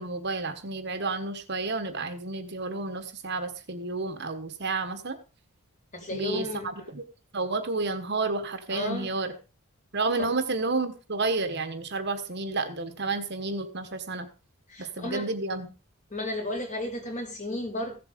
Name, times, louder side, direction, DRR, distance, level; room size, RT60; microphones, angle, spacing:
voice 1, 0.0-5.2 6.1-6.5 6.9-7.0 7.3-9.3 9.9-14.3 14.8-15.7, right 3 dB, 50° right, 9 dB, 1.3 m, -30 dB
voice 2, 5.9-6.9 8.7-9.1 14.7-15.3 16.1-18.0, left 1 dB, 35° left, 3 dB, 3.4 m, -33 dB
15.5 x 7.5 x 5.1 m, 0.33 s
head